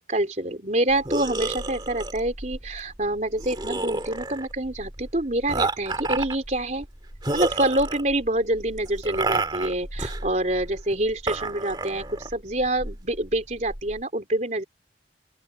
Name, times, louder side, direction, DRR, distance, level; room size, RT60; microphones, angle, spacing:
voice 1, 0.1-6.9 7.3-14.6, right 1 dB, 45° right, 4.0 m, -26 dB
sound 1, 0.9-14.0, right 2 dB, 25° right, 2.1 m, -31 dB
open air
head